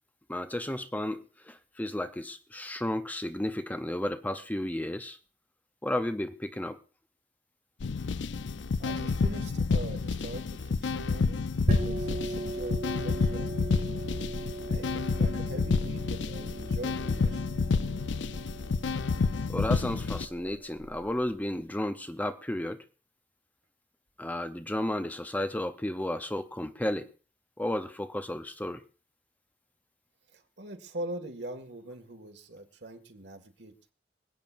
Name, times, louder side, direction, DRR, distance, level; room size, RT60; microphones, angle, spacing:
voice 1, 0.3-5.2 5.8-6.8 19.5-22.8 24.2-27.1 27.6-28.8, left 1 dB, 10° left, 8 dB, 0.6 m, -33 dB
sound 1, 7.8-20.2, left 4 dB, 85° left, 0.5 m, -29 dB
voice 2, 8.8-13.8 14.7-17.6 30.3-33.7, right 1 dB, 65° right, 5 dB, 1.9 m, -43 dB
sound 2, 11.7-21.0, right 1 dB, 50° right, 2.1 m, -37 dB
26.0 x 8.9 x 2.5 m, 0.36 s
head